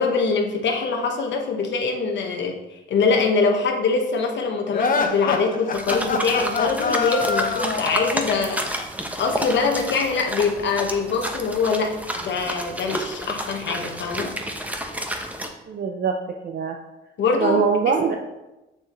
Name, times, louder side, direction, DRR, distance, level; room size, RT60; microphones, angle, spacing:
voice 1, 0.0-8.6 9.2-14.3 17.2-18.2, left 4 dB, 65° left, 2 dB, 1.1 m, -23 dB
sound 1, 4.7-8.3, left 4 dB, 45° left, 0.9 m, -24 dB
Pigs in mud eating, 5.7-15.5, equal, 5° right, 0.9 m, -30 dB
voice 2, 15.7-16.8 17.4-18.2, right 6 dB, 50° right, 4 dB, 0.6 m, -23 dB
6.8 x 6.7 x 3.1 m, 1.0 s
cardioid pair, 90°, 20 cm